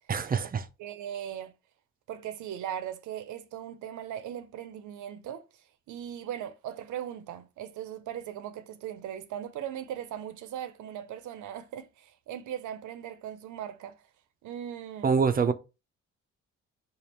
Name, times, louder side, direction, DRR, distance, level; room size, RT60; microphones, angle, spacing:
voice 1, 0.1-0.6 15.0-15.5, right 5 dB, 30° right, 0.4 m, -25 dB
voice 2, 0.8-1.5 2.1-5.5 5.9-14.0 14.4-15.2, right 10 dB, 75° right, 0.6 m, -39 dB
3.4 x 2.4 x 4.2 m
cardioid pair, 90°, 30 cm